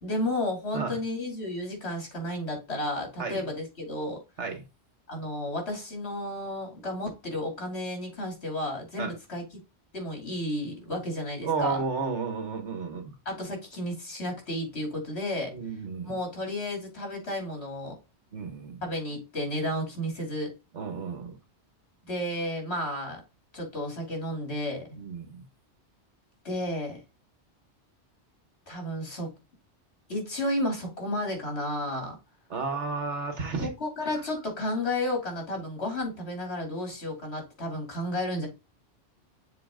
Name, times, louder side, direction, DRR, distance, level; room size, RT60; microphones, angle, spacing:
voice 1, 0.0-4.2 5.1-9.4 9.9-11.8 13.2-15.5 16.0-17.9 18.8-20.5 22.1-23.2 23.5-25.0 26.4-27.0 28.7-29.3 30.1-32.2 33.6-38.5, left 1 dB, 65° left, 3.2 m, -32 dB
voice 2, 11.4-13.1 15.5-16.1 18.3-18.8 20.7-21.4 25.0-25.4 32.5-33.7, right 4 dB, 80° right, 1.8 m, -32 dB
7.1 x 3.9 x 3.7 m
omnidirectional pair, 1.2 m